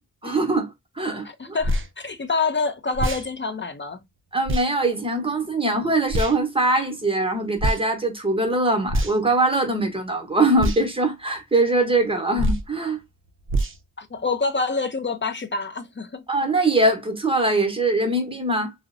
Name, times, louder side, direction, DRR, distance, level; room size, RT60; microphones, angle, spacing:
voice 1, 0.2-1.6 4.3-13.0 16.3-18.7, right 2 dB, 15° right, 0.8 m, -22 dB
voice 2, 1.4-4.0 14.0-16.2, left 4 dB, 35° left, 0.4 m, -27 dB
sound 1, 1.6-1.9 2.9-3.3 4.5-4.7 6.1-6.4 7.6-7.8 8.9-9.3 10.6-10.8 12.4-12.7 13.5-13.8, equal, 40° right, 0.5 m, -24 dB
2.6 x 2.0 x 2.4 m
wide cardioid pair, 55°, 33 cm